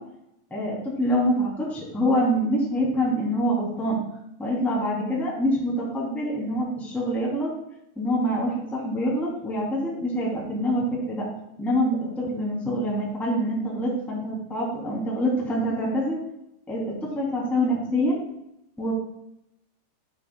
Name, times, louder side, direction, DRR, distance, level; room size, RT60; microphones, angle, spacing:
voice 1, 0.5-4.0 4.4-7.5 7.9-11.3 11.6-16.2 16.7-18.2 18.8-18.9, equal, ahead, -5 dB, 1.7 m, -25 dB
10.5 x 8.5 x 2.2 m, 0.82 s
omnidirectional pair, 4.6 m